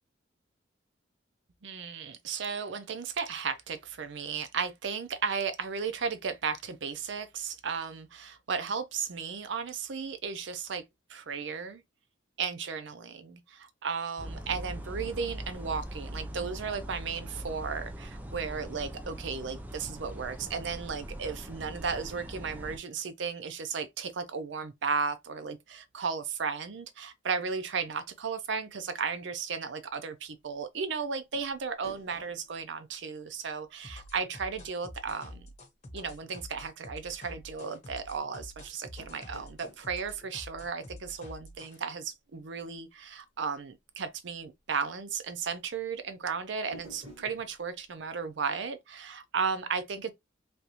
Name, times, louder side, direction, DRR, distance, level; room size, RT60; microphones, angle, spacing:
voice 1, 1.6-10.8 11.1-11.8 12.4-35.5 35.9-50.1, right 5 dB, 65° right, 0.5 m, -35 dB
sound 1, 14.2-22.8, right 1 dB, 10° right, 0.4 m, -41 dB
sound 2, 31.3-34.0 34.2-34.3 39.0-41.5 46.7-47.6, equal, 35° right, 1.9 m, -53 dB
sound 3, 33.8-41.8, left 1 dB, 40° left, 1.3 m, -47 dB
3.4 x 2.5 x 2.8 m
head